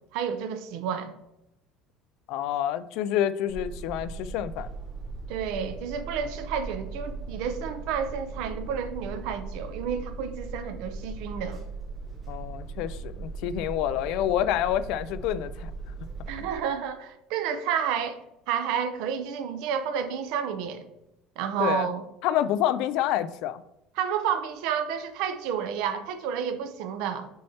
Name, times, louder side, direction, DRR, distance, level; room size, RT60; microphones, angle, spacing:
voice 1, 0.1-1.1 5.3-11.6 16.3-18.2 18.5-20.9 21.4-22.0 24.0-27.3, right 7 dB, 60° right, 9 dB, 0.7 m, -30 dB
voice 2, 2.3-4.7 12.3-15.7 16.4-16.5 21.6-21.9 22.2-23.6, left 11 dB, 55° left, 14 dB, 0.3 m, -28 dB
sound 1, 3.5-16.6, right 4 dB, 15° right, 1.3 m, -39 dB
6.3 x 5.6 x 2.8 m, 0.86 s
cardioid pair, 175°, 0 cm